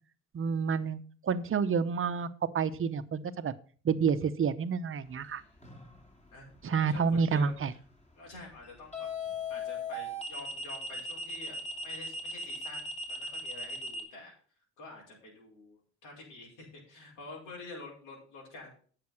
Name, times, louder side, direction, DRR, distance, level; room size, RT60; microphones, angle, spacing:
voice 1, 0.3-2.3 2.5-3.5 3.8-5.4 6.6-7.7, right 6 dB, 45° right, 13 dB, 0.9 m, -29 dB
voice 2, 5.2-5.9 6.3-7.5 8.2-9.1 9.5-11.6 11.8-14.3 14.8-18.8, left 3 dB, 85° left, -2 dB, 5.3 m, -48 dB
sound 1, 5.6-6.0 8.9-14.0, left 1 dB, 20° left, 3.0 m, -37 dB
9.6 x 6.8 x 5.9 m, 0.42 s
cardioid pair, 90°, 30 cm